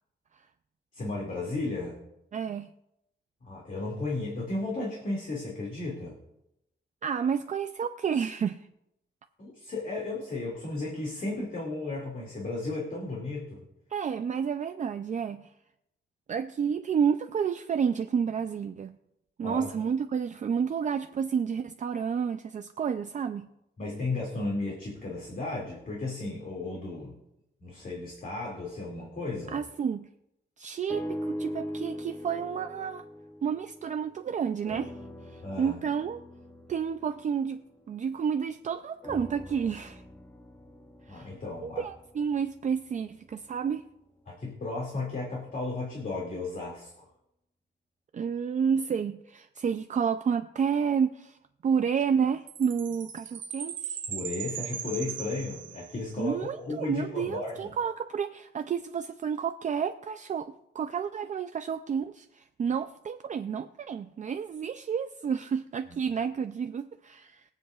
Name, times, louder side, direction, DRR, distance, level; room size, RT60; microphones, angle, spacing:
voice 1, 0.9-2.0 3.4-6.2 9.4-13.7 19.4-19.7 23.8-27.2 27.6-29.6 35.4-35.8 41.1-41.8 44.3-46.9 54.1-57.7 65.9-66.0, left 2 dB, 45° left, 2.4 m, -34 dB
voice 2, 2.3-2.7 7.0-8.7 13.9-15.5 16.3-19.0 19.4-23.5 29.5-30.1 30.6-33.0 33.4-34.9 35.3-36.2 36.7-40.0 41.1-41.3 41.6-43.8 48.1-51.4 51.6-54.0 56.2-67.4, right 7 dB, 40° right, 0.4 m, -30 dB
sound 1, 30.9-34.2 34.6-38.4 39.0-43.2 43.9-44.0, equal, 10° left, 0.7 m, -41 dB
Chime, 52.5-56.2, right 8 dB, 75° right, 0.7 m, -38 dB
22.5 x 7.6 x 2.4 m
wide cardioid pair, 175°, 20 cm